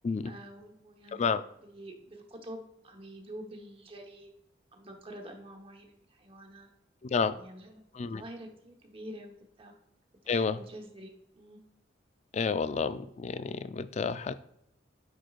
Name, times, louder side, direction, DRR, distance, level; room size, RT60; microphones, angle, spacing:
voice 1, 0.2-1.3 1.6-4.3 4.7-6.7 7.3-7.8 8.1-9.7 10.2-11.6, right 1 dB, 30° right, 3 dB, 1.0 m, -47 dB
voice 2, 10.3-10.6 12.3-14.3, left 5 dB, 35° left, 13 dB, 0.3 m, -30 dB
9.3 x 4.5 x 2.4 m, 0.76 s
head